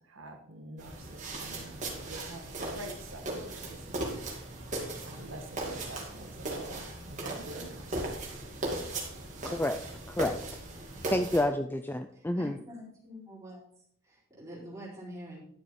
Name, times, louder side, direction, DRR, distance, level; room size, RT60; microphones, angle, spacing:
voice 1, 0.1-4.1 5.0-8.3, right 1 dB, 75° right, 3 dB, 1.6 m, -47 dB
sound 1, 0.8-11.4, right 2 dB, 35° right, 2.6 m, -38 dB
voice 2, 9.4-9.8 10.1-10.4 11.1-12.6, left 1 dB, 10° left, 8 dB, 0.4 m, -29 dB
voice 3, 12.1-13.6 14.0-15.4, equal, 15° right, -6 dB, 4.1 m, -46 dB
11.0 x 6.9 x 4.7 m, 0.67 s
head